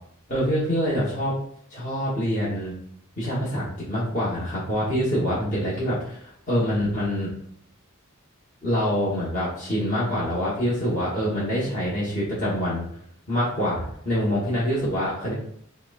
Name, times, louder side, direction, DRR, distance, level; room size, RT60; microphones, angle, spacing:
voice 1, 0.3-1.3 1.7-2.7 3.2-7.3 8.6-12.9 13.3-15.3, equal, 35° left, -9 dB, 1.1 m, -25 dB
5.7 x 2.2 x 2.4 m, 0.67 s
head